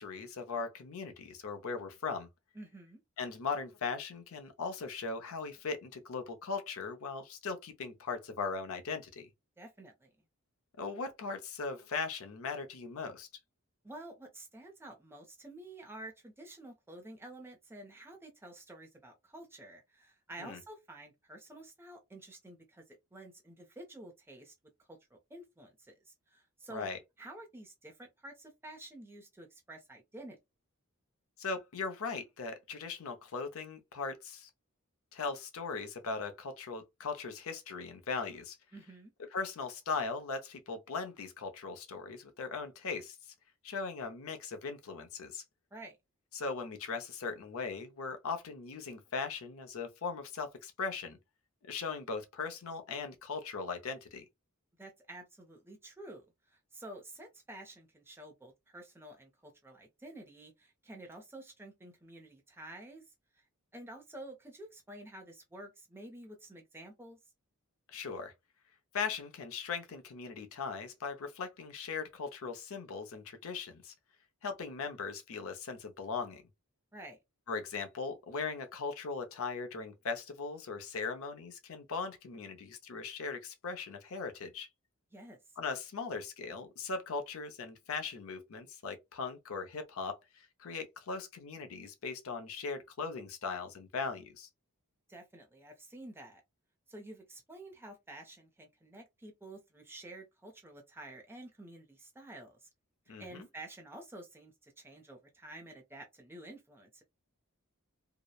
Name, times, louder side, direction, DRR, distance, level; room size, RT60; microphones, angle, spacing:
voice 1, 0.0-2.3 3.2-9.3 10.8-13.3 20.4-20.6 26.7-27.0 31.4-34.5 35.1-38.6 39.3-43.3 43.6-45.4 46.3-51.2 51.7-54.2 67.9-68.3 68.9-73.9 74.4-76.4 77.5-84.7 85.6-94.5 103.1-103.5, left 4 dB, 70° left, 0.6 m, -39 dB
voice 2, 2.5-3.0 9.6-10.1 13.8-24.5 25.1-26.9 27.2-30.4 38.7-39.1 45.7-46.0 54.8-63.0 63.4-63.5 63.7-67.2 76.9-77.2 85.1-85.4 95.1-96.4 96.9-102.7 103.2-107.0, right 1 dB, 10° right, 0.5 m, -50 dB
2.8 x 2.0 x 2.3 m
head